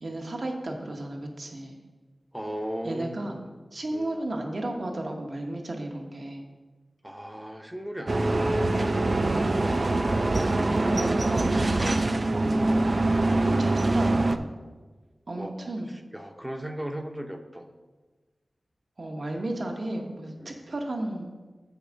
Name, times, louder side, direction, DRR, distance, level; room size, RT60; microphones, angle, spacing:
voice 1, 0.0-1.7 2.8-3.3 3.7-6.4 9.2-9.5 10.9-12.1 12.3-13.0 13.5-14.5 15.3-15.9 19.0-21.3, right 1 dB, 60° right, 2 dB, 1.1 m, -33 dB
voice 2, 2.3-3.4 3.9-4.2 7.0-8.5 10.1-11.0 15.4-15.7 16.1-17.7 20.4-20.5, equal, 10° right, 6 dB, 0.7 m, -37 dB
sound 1, 8.1-14.4, right 2 dB, 45° right, 0.4 m, -24 dB
7.1 x 4.8 x 6.2 m, 1.3 s
wide cardioid pair, 95°, 0 cm